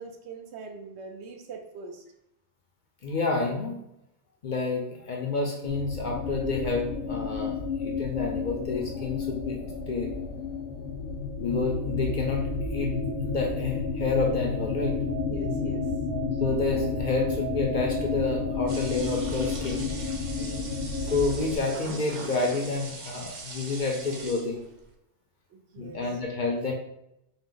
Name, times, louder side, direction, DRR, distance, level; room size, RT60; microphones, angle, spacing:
voice 1, 0.0-2.0 15.3-15.9 20.4-20.7 25.5-26.0, right 4 dB, 75° right, 4 dB, 0.9 m, -42 dB
voice 2, 3.0-3.8 4.4-9.6 9.9-10.1 11.4-13.0 13.3-15.0 16.4-19.9 21.1-24.6 25.8-26.7, left 3 dB, 55° left, 0 dB, 0.6 m, -29 dB
sound 1, 5.7-21.6, left 4 dB, 85° left, 0.9 m, -31 dB
sound 2, 18.7-24.8, right 3 dB, 50° right, 0.6 m, -41 dB
4.5 x 2.0 x 3.7 m, 0.82 s
omnidirectional pair, 1.2 m